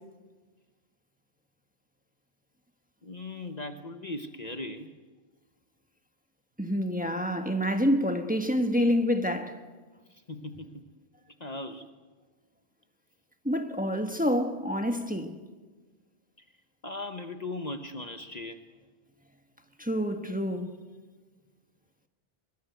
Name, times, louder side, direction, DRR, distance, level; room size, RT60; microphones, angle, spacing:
voice 1, 3.0-4.9 10.3-10.9 11.4-11.9 16.8-18.6, left 2 dB, 40° left, 1.2 m, -38 dB
voice 2, 6.6-9.5 13.4-15.4 19.8-20.8, equal, 10° right, 1.5 m, -27 dB
24.0 x 22.5 x 8.1 m
omnidirectional pair, 1.1 m